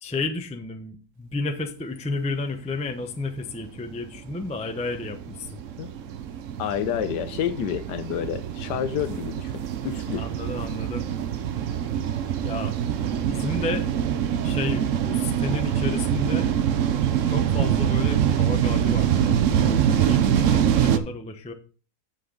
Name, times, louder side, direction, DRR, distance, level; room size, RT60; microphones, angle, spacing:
voice 1, 0.0-5.6 10.1-11.1 12.4-12.7 13.3-13.9 14.4-16.5 17.3-21.5, left 3 dB, 10° left, 0.4 m, -32 dB
sound 1, 3.3-21.0, right 9 dB, 60° right, 0.9 m, -24 dB
voice 2, 6.6-10.2, left 9 dB, 80° left, 1.3 m, -29 dB
9.9 x 5.8 x 3.9 m
omnidirectional pair, 1.8 m